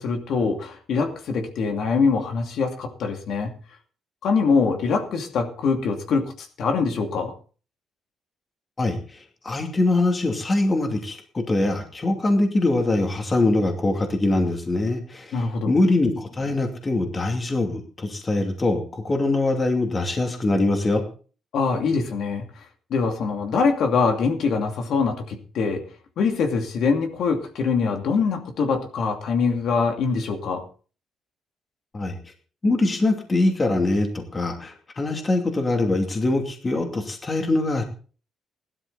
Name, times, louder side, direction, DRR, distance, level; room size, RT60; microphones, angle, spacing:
voice 1, 0.0-3.5 4.2-7.3 15.3-15.7 21.5-22.6 22.9-25.9 26.2-30.6, left 5 dB, 65° left, 3 dB, 2.6 m, -23 dB
voice 2, 9.4-21.0 31.9-32.2 32.6-37.8, left 2 dB, 25° left, 4 dB, 2.6 m, -23 dB
16.5 x 12.5 x 4.1 m, 0.38 s
cardioid pair, 135°, 0 cm